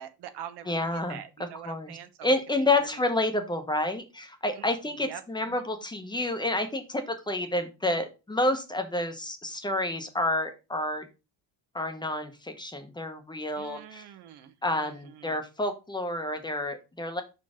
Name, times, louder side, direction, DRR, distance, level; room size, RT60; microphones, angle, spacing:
voice 1, 0.0-3.0 4.5-4.6 5.0-5.6 13.5-15.4, right 10 dB, 85° right, 10 dB, 1.1 m, -45 dB
voice 2, 0.7-1.2 1.6-11.1 11.7-14.0 14.6-17.2, left 2 dB, 10° left, 7 dB, 0.8 m, -29 dB
5.6 x 4.2 x 4.9 m, 0.28 s
cardioid pair, 160°, 39 cm